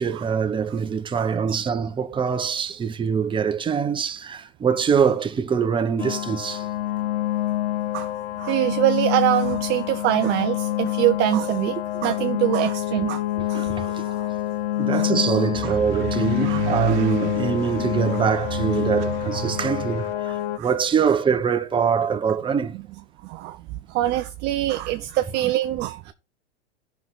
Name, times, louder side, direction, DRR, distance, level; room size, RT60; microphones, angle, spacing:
voice 1, 0.0-6.7 10.2-10.3 12.2-12.3 13.0-13.1 13.4-14.0 14.8-20.1 20.6-22.7, right 6 dB, 15° right, 0.9 m, -24 dB
sound 1, 6.0-20.6, left 14 dB, 45° left, 0.5 m, -27 dB
voice 2, 8.4-11.8 12.0-13.2 13.5-14.3 14.9-15.1 16.5-16.6 20.6-20.7 23.2-23.6 23.9-26.1, right 15 dB, 30° right, 0.5 m, -24 dB
sound 2, 15.5-20.1, right 7 dB, 50° right, 1.2 m, -31 dB
15.5 x 5.8 x 3.1 m
hypercardioid pair, 110°, 34 cm